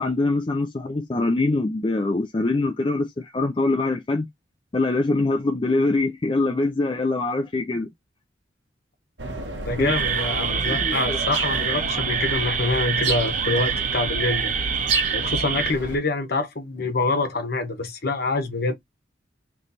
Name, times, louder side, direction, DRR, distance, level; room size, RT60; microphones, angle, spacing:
voice 1, 0.0-4.3 4.7-7.9 9.8-9.9 10.5-11.2, left 2 dB, 25° left, 0.4 m, -24 dB
sound 1, 9.2-16.0, right 2 dB, 70° right, 1.3 m, -30 dB
voice 2, 9.6-14.5 15.1-18.7, left 3 dB, 55° left, 1.2 m, -26 dB
sound 2, 9.9-15.7, right 7 dB, 45° right, 0.6 m, -26 dB
3.3 x 3.1 x 4.0 m
head